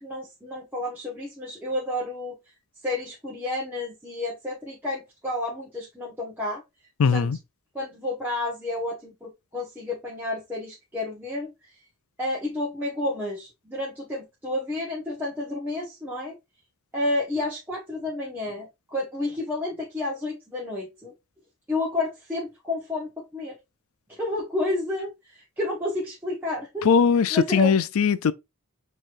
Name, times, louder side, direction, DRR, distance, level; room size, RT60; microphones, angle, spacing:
voice 1, 0.0-2.4 2.8-6.6 7.1-7.3 7.7-11.5 12.2-16.3 16.9-21.1 21.7-23.6 24.1-26.9 27.3-27.7, left 2 dB, 10° right, 1.0 m, -30 dB
voice 2, 7.0-7.4 26.8-28.3, left 6 dB, 85° left, 0.4 m, -20 dB
6.6 x 3.0 x 2.6 m
head